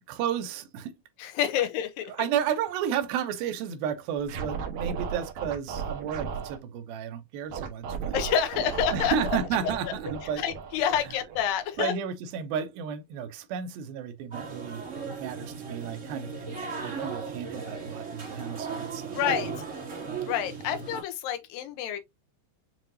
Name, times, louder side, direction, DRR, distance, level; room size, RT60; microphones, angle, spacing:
voice 1, 0.1-0.9 2.1-8.1 8.9-10.4 11.8-14.8 15.2-19.2, right 8 dB, 80° right, 2.5 m, -32 dB
voice 2, 1.2-2.1 8.1-9.1 9.6-9.9 10.4-11.9 19.1-19.7 20.3-22.0, left 9 dB, 75° left, 2.4 m, -28 dB
Scratching (performance technique), 4.2-6.6 7.5-11.8, right 6 dB, 65° right, 2.0 m, -35 dB
sound 1, 14.3-21.0, right 5 dB, 30° right, 1.4 m, -37 dB
7.5 x 2.7 x 2.6 m
omnidirectional pair, 4.3 m